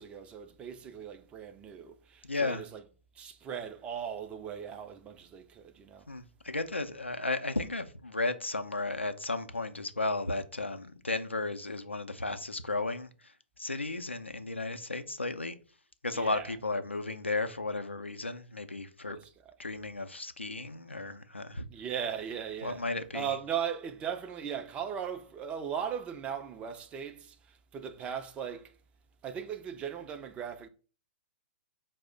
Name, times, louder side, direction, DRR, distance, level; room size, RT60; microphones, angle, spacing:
voice 1, 0.0-2.8 3.2-6.1 16.1-16.5 19.1-19.5 21.7-22.8 23.1-28.7 29.2-30.7, right 8 dB, 20° right, 0.4 m, -38 dB
voice 2, 2.2-2.6 6.1-13.1 13.6-15.6 16.0-19.2 19.6-21.6 22.6-23.3, left 2 dB, 90° left, 0.4 m, -34 dB
4.7 x 2.0 x 3.7 m
figure-of-eight pair, 115°, 6 cm